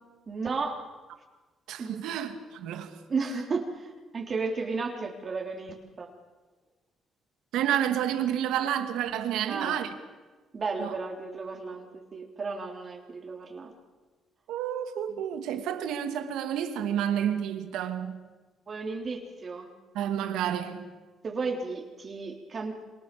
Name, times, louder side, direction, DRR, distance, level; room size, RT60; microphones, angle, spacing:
voice 1, 0.3-0.9 1.8-2.0 3.1-6.1 9.5-9.8 10.5-13.7 18.7-19.7 21.2-22.8, right 4 dB, 45° right, 3.7 m, -33 dB
voice 2, 1.7-2.9 7.5-9.9 10.8-10.9 14.5-18.2 19.9-20.9, right 10 dB, 90° right, 2.3 m, -30 dB
28.0 x 25.0 x 7.0 m
cardioid pair, 90°, 0 cm